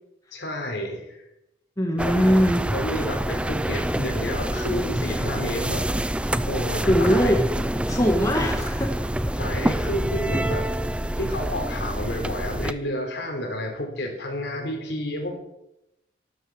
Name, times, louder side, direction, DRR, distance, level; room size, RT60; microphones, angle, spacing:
voice 1, 0.3-1.2 1.9-2.3 2.7-7.4 9.3-10.7 11.1-15.3, left 1 dB, 70° left, 1 dB, 4.2 m, -31 dB
voice 2, 1.8-2.7 6.9-7.4 7.9-9.0, equal, 20° left, 0 dB, 1.8 m, -21 dB
sound 1, 2.0-12.7, right 1 dB, 5° right, 0.4 m, -26 dB
12.5 x 12.5 x 6.4 m, 0.87 s
head